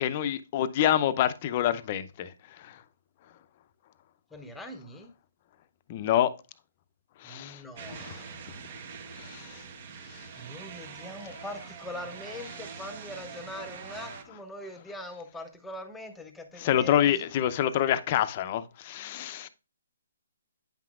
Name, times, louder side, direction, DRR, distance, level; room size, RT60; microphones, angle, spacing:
voice 1, 0.0-2.8 5.9-6.3 7.2-7.6 7.9-8.3 9.2-9.6 10.1-10.2 13.9-14.1 16.6-19.5, left 11 dB, 35° left, 0.6 m, -27 dB
voice 2, 4.3-5.1 7.2-8.0 10.4-16.9, left 1 dB, 5° left, 0.9 m, -42 dB
sound 1, 7.8-14.2, right 6 dB, 40° right, 1.0 m, -44 dB
8.8 x 5.7 x 2.4 m
hypercardioid pair, 155°, 0 cm